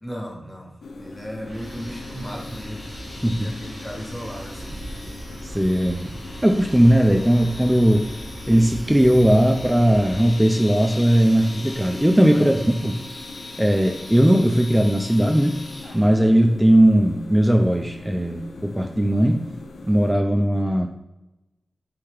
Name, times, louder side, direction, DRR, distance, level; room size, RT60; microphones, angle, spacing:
voice 1, 0.0-2.9 3.3-4.9 12.3-12.6, equal, 15° left, 0 dB, 1.0 m, -36 dB
sound 1, 0.8-20.1, left 3 dB, 90° left, 0.3 m, -41 dB
sound 2, 1.4-10.3, right 1 dB, 70° right, 0.9 m, -39 dB
sound 3, 1.5-16.3, left 2 dB, 65° left, 1.1 m, -41 dB
voice 2, 5.4-6.1 6.4-8.1 8.5-13.0 13.6-15.6 15.9-19.4 19.9-20.9, equal, 10° right, 3 dB, 0.3 m, -18 dB
3.1 x 2.8 x 3.4 m, 0.96 s
cardioid pair, 45°, 0 cm